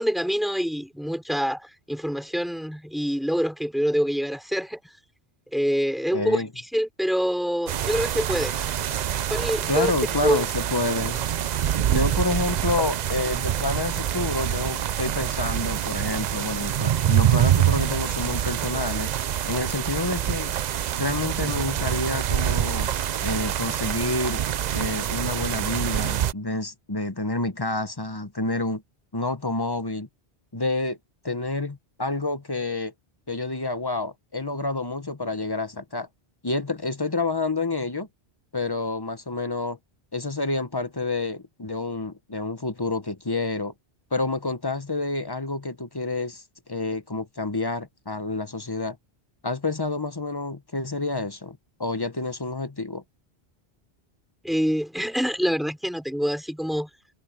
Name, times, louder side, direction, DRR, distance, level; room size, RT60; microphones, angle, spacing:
voice 1, 0.0-4.8 5.5-6.4 6.7-8.6 9.3-9.9 10.2-10.4 54.4-56.9, equal, ahead, 4.0 m, -25 dB
voice 2, 6.1-6.5 9.7-11.2 11.9-19.1 19.4-20.5 21.0-22.9 23.2-24.4 24.7-28.8 29.1-30.1 30.5-31.0 31.2-32.9 33.3-36.1 36.4-38.1 38.5-39.8 40.1-43.7 44.1-46.4 46.7-49.0 49.4-53.0, left 2 dB, 25° left, 1.0 m, -28 dB
sound 1, 7.7-26.3, right 10 dB, 55° right, 0.5 m, -26 dB
omnidirectional pair, 1.1 m